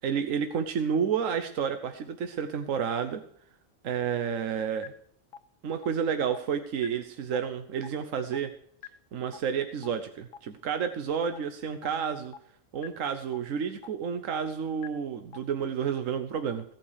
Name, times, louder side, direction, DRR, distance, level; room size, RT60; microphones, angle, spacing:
voice 1, 0.0-3.2 3.8-4.9 5.6-8.5 9.1-12.3 12.7-16.6, right 7 dB, 75° right, 8 dB, 1.3 m, -30 dB
sound 1, 4.8-4.9 5.3-5.4 5.8-5.9 6.3-6.4 6.8-6.9 7.3-7.4 7.8-7.9 8.3-8.4 8.8-8.9 9.3-9.4 9.8-9.9 10.3-10.4 10.8-10.9 11.3-11.4 11.8-11.9 12.3-12.4 12.8-12.9 13.3-13.4 13.8-13.9 14.3-14.4 14.8-14.9 15.3-15.4, left 9 dB, 80° left, 1.2 m, -42 dB
16.5 x 8.8 x 4.9 m, 0.65 s
omnidirectional pair, 1.4 m